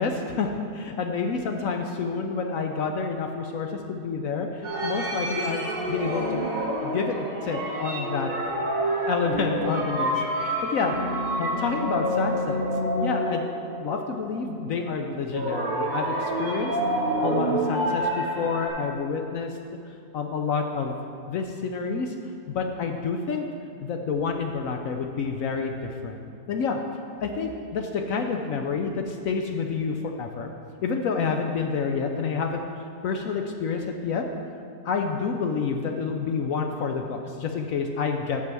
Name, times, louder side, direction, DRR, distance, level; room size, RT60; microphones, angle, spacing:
voice 1, 0.0-6.4 6.8-7.2 7.4-8.3 9.1-10.9 11.4-12.6 13.0-13.4 13.8-16.8 17.2-19.5 20.1-21.0 21.3-22.1 22.5-23.4 23.8-25.7 26.0-26.8 27.2-30.5 30.8-32.6 33.0-34.3 34.8-38.4, left 5 dB, 65° left, 4 dB, 0.9 m, -28 dB
sound 1, 4.6-14.7 15.3-18.7, right 1 dB, 25° right, 2.0 m, -28 dB
8.4 x 6.9 x 6.0 m, 2.5 s
omnidirectional pair, 1.9 m